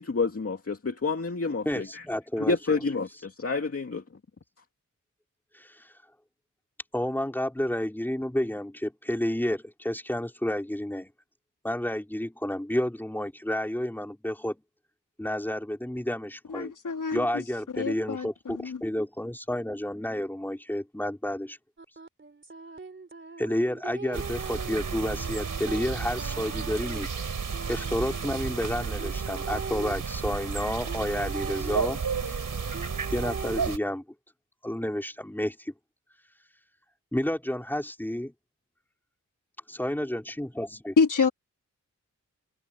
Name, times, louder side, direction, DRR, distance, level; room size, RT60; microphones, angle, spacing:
voice 1, 0.0-2.0 2.5-4.0, left 4 dB, 45° left, 2.4 m, -29 dB
voice 2, 1.7-2.9 5.5-5.9 6.9-11.1 11.6-14.6 15.2-16.7 17.1-21.6 23.4-27.1 27.7-32.4 33.1-34.0 34.6-35.7 37.1-38.3 39.7-40.9, left 1 dB, 5° left, 4.1 m, -30 dB
voice 3, 16.5-17.3 17.7-18.8 41.0-41.3, left 5 dB, 75° left, 3.5 m, -26 dB
sound 1, 21.8-29.9 30.9-33.7, right 4 dB, 40° right, 3.7 m, -41 dB
sound 2, 24.1-33.8, right 5 dB, 85° right, 6.1 m, -32 dB
wide cardioid pair, 100°, 31 cm